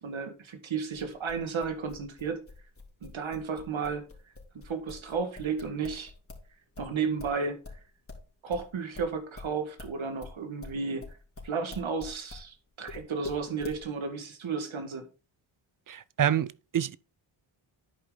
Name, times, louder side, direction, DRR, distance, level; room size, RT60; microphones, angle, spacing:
voice 1, 0.0-2.4 3.0-4.1 4.6-6.1 6.8-7.6 8.4-11.1 11.4-15.1, right 5 dB, 70° right, 1.9 m, -33 dB
sound 1, 0.9-6.5 6.7-12.5 12.9-13.8, left 3 dB, 25° left, 2.9 m, -44 dB
voice 2, 15.9-17.0, right 9 dB, 45° right, 0.5 m, -27 dB
11.0 x 5.1 x 3.9 m
cardioid pair, 60°, 49 cm